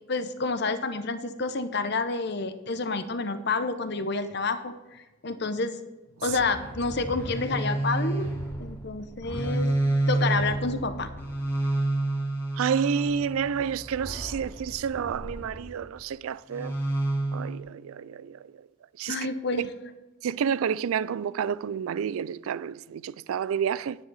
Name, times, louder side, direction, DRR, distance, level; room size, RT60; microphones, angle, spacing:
voice 1, 0.1-5.8 6.2-8.3 8.6-9.7 10.1-11.1 19.1-19.7, left 3 dB, 55° left, 0.8 m, -29 dB
sound 1, 6.3-15.8 16.5-17.6, right 2 dB, 10° left, 1.7 m, -30 dB
voice 2, 12.6-16.7 17.3-18.4 19.0-19.2 19.5-19.6 20.2-24.0, right 7 dB, 80° right, 0.3 m, -29 dB
10.0 x 9.5 x 4.1 m
head